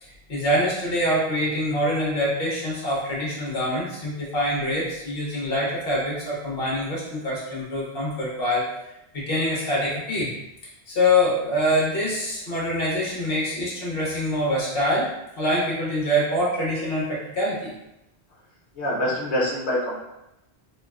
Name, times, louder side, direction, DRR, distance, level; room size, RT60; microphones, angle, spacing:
voice 1, 0.0-8.7 9.1-10.3 10.9-15.1 15.3-17.7, left 1 dB, 60° left, -5 dB, 1.2 m, -25 dB
voice 2, 18.8-20.0, left 1 dB, 80° left, -8 dB, 1.0 m, -25 dB
3.7 x 2.3 x 2.3 m, 0.88 s
omnidirectional pair, 1.1 m